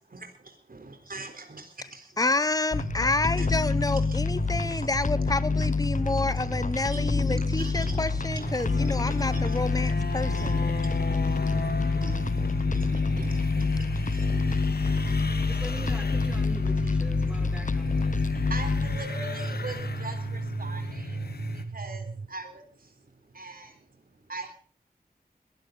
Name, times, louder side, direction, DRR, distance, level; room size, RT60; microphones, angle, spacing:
voice 1, 0.7-2.2 3.4-3.6 4.1-4.9 5.4-15.1 17.2-17.4 18.2-24.5, right 2 dB, 65° right, 5 dB, 3.9 m, -43 dB
voice 2, 2.2-10.5, left 2 dB, 20° left, 16 dB, 1.0 m, -29 dB
sound 1, 2.7-19.0, left 4 dB, 50° left, 0.8 m, -27 dB
sound 2, 2.7-22.3, right 3 dB, 45° right, 1.1 m, -35 dB
sound 3, 8.4-21.6, left 4 dB, 75° left, 2.0 m, -38 dB
voice 3, 15.4-18.2, equal, 5° right, 4 dB, 6.5 m, -42 dB
21.5 x 14.5 x 4.0 m, 0.41 s
wide cardioid pair, 75°, 16 cm